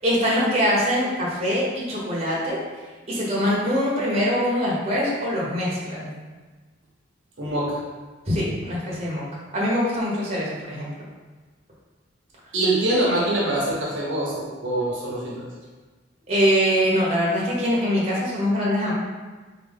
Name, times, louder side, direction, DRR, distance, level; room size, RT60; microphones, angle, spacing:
voice 1, 0.0-2.6 3.1-6.1 8.2-9.2 9.5-10.9 16.3-18.9, equal, 30° right, -7 dB, 1.0 m, -23 dB
voice 2, 7.4-7.8 12.5-15.5, right 1 dB, 65° right, -5 dB, 0.9 m, -24 dB
3.8 x 3.0 x 3.5 m, 1.3 s
head